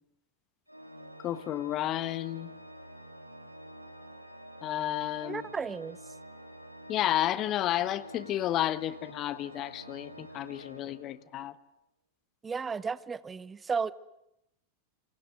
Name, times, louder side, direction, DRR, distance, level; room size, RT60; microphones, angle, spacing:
Organ, 0.7-11.5, right 1 dB, 90° right, 2.5 m, -48 dB
voice 1, 1.2-2.5 4.6-5.5 6.9-11.6, left 13 dB, 35° left, 1.3 m, -31 dB
voice 2, 5.2-6.0 12.4-13.9, right 5 dB, 15° right, 1.0 m, -33 dB
27.5 x 26.5 x 8.1 m
figure-of-eight pair, 90°, 0 cm